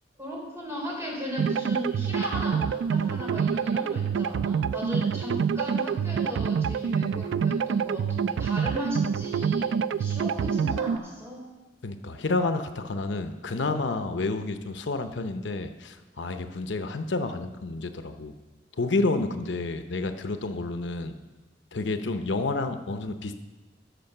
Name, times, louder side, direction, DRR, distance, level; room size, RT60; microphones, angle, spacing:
voice 1, 0.2-11.4, equal, 15° right, -3 dB, 3.6 m, -36 dB
sound 1, 1.4-11.0, right 6 dB, 80° right, 0.3 m, -27 dB
voice 2, 11.8-18.3 18.8-21.1 21.7-23.3, left 3 dB, 90° left, 8 dB, 0.7 m, -29 dB
13.0 x 5.3 x 6.6 m, 1.2 s
head